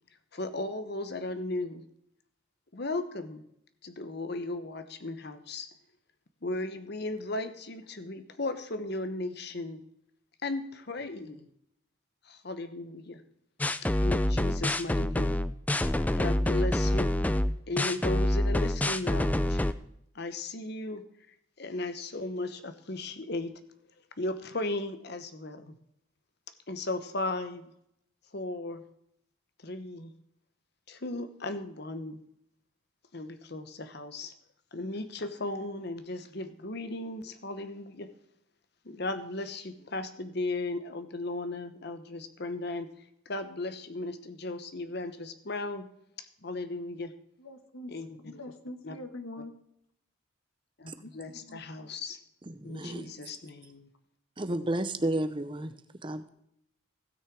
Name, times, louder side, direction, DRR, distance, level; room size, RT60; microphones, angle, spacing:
voice 1, 0.3-1.8 2.7-3.4 3.8-5.7 6.4-9.8 10.4-11.5 12.2-13.2 14.0-15.5 16.1-17.1 17.7-19.6 20.1-21.0 21.6-23.6 24.2-25.8 26.7-27.7 28.3-28.8 29.6-30.1 30.9-32.2 33.1-34.3 34.7-38.1 38.8-42.9 43.3-45.9 46.2-47.1 47.9-48.4 48.8-49.0 50.8-52.2 52.6-53.9, left 2 dB, 50° left, 1.0 m, -36 dB
sound 1, 13.6-19.7, left 1 dB, 5° left, 0.3 m, -27 dB
voice 2, 47.4-47.9 48.2-49.5 51.5-51.6, left 1 dB, 85° left, 1.4 m, -43 dB
voice 3, 52.5-53.1 54.4-55.7 56.0-56.3, right 1 dB, 25° right, 0.7 m, -32 dB
16.5 x 6.4 x 4.7 m
head